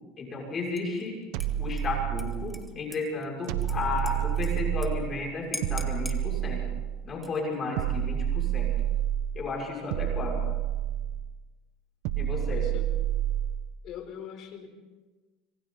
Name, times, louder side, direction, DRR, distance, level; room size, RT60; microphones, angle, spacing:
voice 1, 0.2-1.2 1.6-6.6 7.0-8.7 9.3-10.4 12.1-12.6, left 3 dB, 35° left, -1 dB, 6.6 m, -33 dB
Dishes pots and pans / Liquid, 0.8-1.1 1.4-4.9 5.2-5.3 5.5-6.2 7.1-7.6, equal, ahead, 2.2 m, -43 dB
sound 1, 1.3-2.7 3.5-5.1 5.6-7.0 7.8-9.4 9.9-11.3 12.0-13.7, right 11 dB, 70° right, 1.4 m, -29 dB
voice 2, 12.5-13.0 13.8-14.7, left 8 dB, 55° left, 6 dB, 4.3 m, -40 dB
26.0 x 25.0 x 4.1 m, 1.3 s
supercardioid pair, 100°, 0 cm